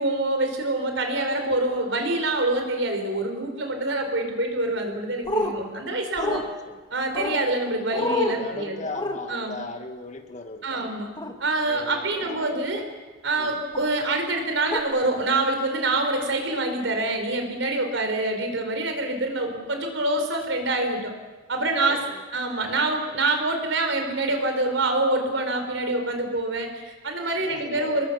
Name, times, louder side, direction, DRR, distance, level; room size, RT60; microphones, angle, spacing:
voice 1, 0.0-6.4 6.9-8.8 9.3-9.6 10.6-11.1 11.4-12.8 13.2-21.1 21.5-22.0 22.3-28.1, right 2 dB, 70° right, 4 dB, 4.9 m, -26 dB
sound 1, 5.2-5.5 6.2-6.4 7.1-7.4 7.9-8.4 8.9-9.2 11.2-11.3 12.2-12.5 13.7-13.9 14.7-14.8, left 2 dB, 20° left, 1.8 m, -27 dB
voice 2, 6.3-6.8 8.0-11.0 11.7-12.7 13.3-13.6 21.5-22.2 27.4-28.0, left 2 dB, 40° left, 6 dB, 1.9 m, -38 dB
28.5 x 21.0 x 7.0 m, 1.3 s
head